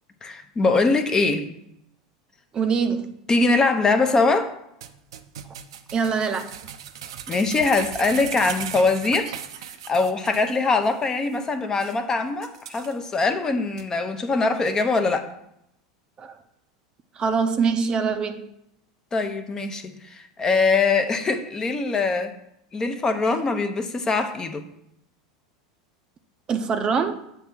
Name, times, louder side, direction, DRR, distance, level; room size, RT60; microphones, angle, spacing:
voice 1, 0.2-1.5 3.3-4.5 7.3-9.3 9.9-15.3 19.1-22.3 22.7-24.6, left 3 dB, 25° left, 7 dB, 0.8 m, -22 dB
voice 2, 2.5-3.2 5.9-6.5 16.2-16.4 17.2-18.5 26.5-27.2, right 5 dB, 30° right, 8 dB, 0.6 m, -24 dB
sound 1, 4.8-10.5 10.8-10.9 11.3-11.4 11.8-12.0 12.4-13.2 13.8-13.9, right 9 dB, 80° right, 0.5 m, -37 dB
7.1 x 3.5 x 6.0 m, 0.78 s
hypercardioid pair, 95°, 3 cm